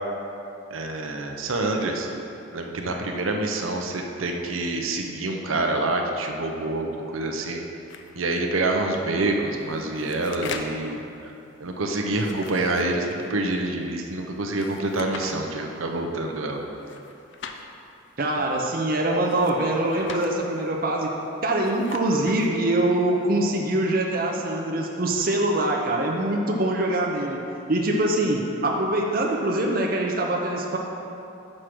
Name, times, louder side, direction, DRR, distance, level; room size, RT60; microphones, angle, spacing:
voice 1, 0.7-2.1 2.5-7.6 8.1-11.3 11.6-16.6, right 2 dB, 85° right, 2 dB, 0.7 m, -27 dB
sound 1, 7.9-8.4 9.5-10.9 12.1-13.4 14.6-15.4 16.8-17.6 19.1-20.3 21.4-22.5, left 5 dB, 60° left, 0.4 m, -40 dB
voice 2, 18.2-21.1 21.4-27.4 27.7-30.8, right 1 dB, 45° right, 0 dB, 0.6 m, -24 dB
6.4 x 4.9 x 6.0 m, 2.8 s
head